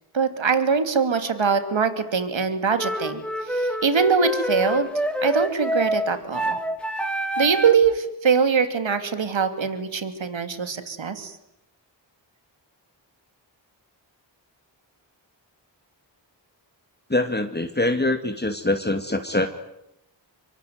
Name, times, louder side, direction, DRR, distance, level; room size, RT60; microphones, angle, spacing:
voice 1, 0.1-4.9 5.2-6.6 7.4-11.4, right 5 dB, 75° right, 10 dB, 2.9 m, -23 dB
sound 1, 2.8-7.9, right 1 dB, ahead, 3.1 m, -27 dB
voice 2, 17.1-19.5, left 2 dB, 20° left, 7 dB, 2.3 m, -24 dB
25.5 x 24.0 x 9.5 m, 0.83 s
cardioid pair, 50°, 46 cm